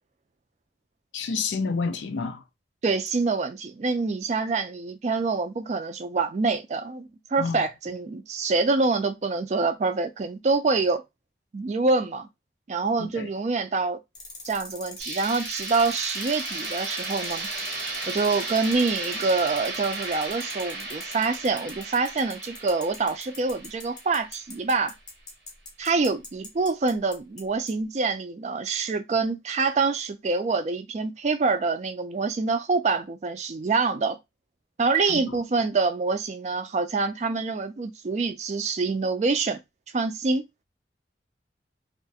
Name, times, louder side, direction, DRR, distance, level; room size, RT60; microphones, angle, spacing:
voice 1, 1.1-2.4 7.4-7.6 13.0-13.3 35.1-35.2, left 4 dB, 90° left, 0.4 m, -29 dB
voice 2, 2.8-11.0 11.5-12.3 12.7-14.0 14.5-17.5 18.1-24.9 25.8-34.2 34.8-39.6 39.9-40.5, right 4 dB, 40° right, 0.3 m, -26 dB
sound 1, 14.2-27.4 27.7-27.8, left 3 dB, 25° left, 0.7 m, -42 dB
sound 2, 15.0-24.8, right 3 dB, 80° right, 0.8 m, -35 dB
2.3 x 2.1 x 2.6 m
head